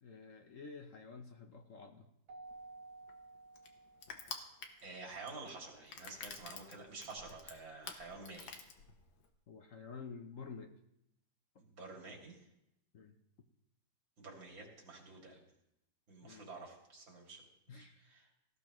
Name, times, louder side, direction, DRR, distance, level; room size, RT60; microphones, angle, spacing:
voice 1, 0.0-2.1 9.5-10.7 12.9-13.1 16.2-16.5 17.7-18.0, left 5 dB, 55° left, 5 dB, 1.0 m, -50 dB
Keyboard (musical), 2.3-4.5, right 3 dB, 60° right, 1.4 m, -54 dB
Crushing, 2.5-9.3, left 5 dB, 80° left, 1.9 m, -50 dB
voice 2, 4.8-8.6 11.6-12.4 14.2-15.4 16.1-18.3, right 3 dB, 85° right, -1 dB, 3.4 m, -50 dB
18.0 x 14.5 x 3.1 m, 0.84 s
omnidirectional pair, 2.1 m